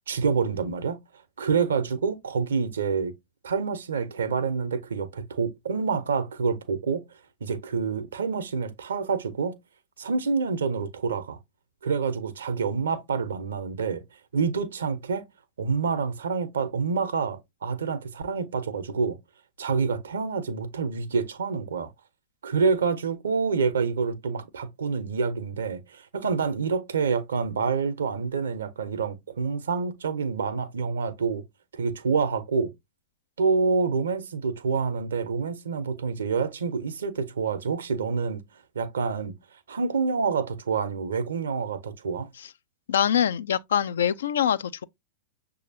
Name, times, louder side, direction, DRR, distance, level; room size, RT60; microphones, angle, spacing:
voice 1, 0.1-1.0 1.4-3.1 3.4-7.0 7.4-9.6 10.0-11.4 11.8-14.0 14.3-15.3 15.6-19.2 19.6-21.9 22.4-31.4 31.7-32.7 33.4-38.4 38.7-39.4 39.7-42.3, right 5 dB, 75° right, 0.7 m, -27 dB
voice 2, 42.9-44.8, left 9 dB, 70° left, 0.3 m, -24 dB
6.5 x 2.7 x 2.7 m
figure-of-eight pair, 100°, 0 cm